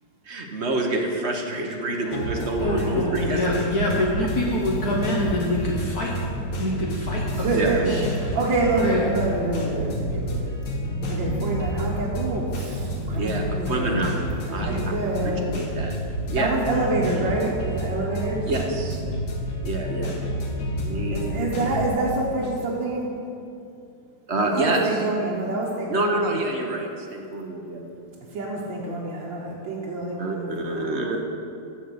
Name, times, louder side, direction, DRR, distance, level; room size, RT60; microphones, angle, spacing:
voice 1, 0.2-3.6 7.5-8.0 13.1-14.2 14.5-14.8 15.5-16.0 16.3-16.5 18.5-19.0 19.6-20.2 20.8-21.5 24.3-25.0 25.9-27.8 30.2-31.2, right 2 dB, 45° right, 2 dB, 1.0 m, -27 dB
voice 2, 2.0-6.2 6.6-8.0 8.8-9.1, left 1 dB, 55° left, -2 dB, 1.5 m, -26 dB
sound 1, 2.1-21.9, equal, 80° left, 2.1 m, -29 dB
voice 3, 7.1-10.6 11.1-14.1 14.4-15.5 16.4-18.5 21.1-23.1 24.4-26.4 28.3-31.2, right 2 dB, 80° right, -4 dB, 1.9 m, -27 dB
13.0 x 4.5 x 7.8 m, 2.6 s
omnidirectional pair, 2.1 m